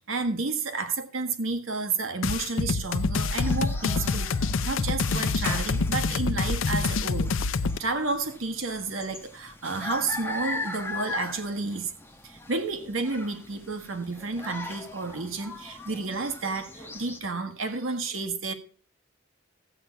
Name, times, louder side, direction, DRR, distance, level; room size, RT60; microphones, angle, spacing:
voice 1, 0.1-7.3 7.8-11.9 12.2-18.5, right 3 dB, 90° right, 1.4 m, -31 dB
sound 1, 2.2-7.8, left 4 dB, 75° left, 0.6 m, -26 dB
sound 2, 3.4-17.2, left 3 dB, 10° left, 1.1 m, -40 dB
13.5 x 8.2 x 5.6 m
head